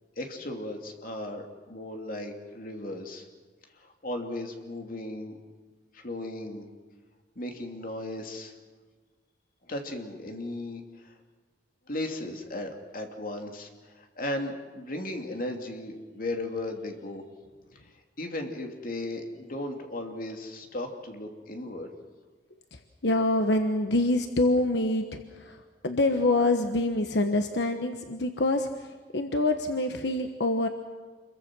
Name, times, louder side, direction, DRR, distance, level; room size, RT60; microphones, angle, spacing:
voice 1, 0.2-3.3 3.8-5.4 5.9-6.6 7.4-8.5 9.7-11.2 11.9-17.2 17.7-21.9, left 1 dB, 55° left, 3 dB, 2.8 m, -36 dB
voice 2, 22.7-30.7, left 2 dB, 80° left, 6 dB, 1.3 m, -26 dB
27.5 x 22.5 x 6.2 m, 1.4 s
head